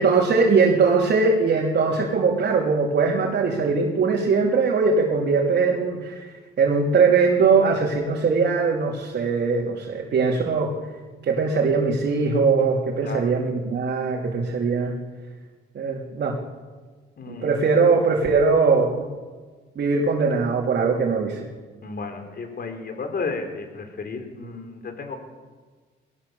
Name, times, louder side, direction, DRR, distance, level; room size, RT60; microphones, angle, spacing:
voice 1, 0.0-6.3 6.6-10.7 11.2-14.9 15.8-16.4 17.3-19.1 19.8-21.4, right 4 dB, 60° right, -1 dB, 3.4 m, -21 dB
voice 2, 13.0-13.3 17.2-17.5 21.8-25.2, left 4 dB, 50° left, 5 dB, 4.5 m, -33 dB
21.5 x 18.0 x 7.1 m, 1.4 s
cardioid pair, 90°, 20 cm